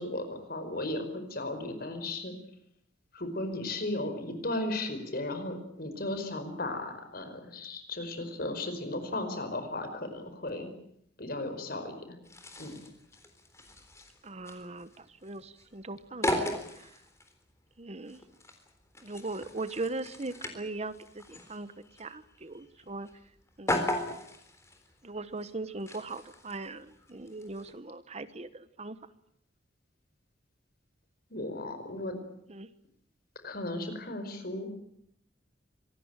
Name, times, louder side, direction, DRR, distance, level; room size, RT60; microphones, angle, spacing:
voice 1, 0.0-2.3 3.1-10.7 11.2-12.2 12.6-12.8 31.3-32.1 33.4-34.7, left 2 dB, 55° left, 8 dB, 5.2 m, -35 dB
sound 1, 12.2-27.7, left 1 dB, 15° left, 3.7 m, -38 dB
voice 2, 14.2-16.9 17.8-18.2 19.0-21.7 22.0-23.1 23.6-23.9 25.0-29.0 32.5-32.7, right 2 dB, 35° right, 13 dB, 1.1 m, -39 dB
25.5 x 19.5 x 9.0 m, 0.73 s
head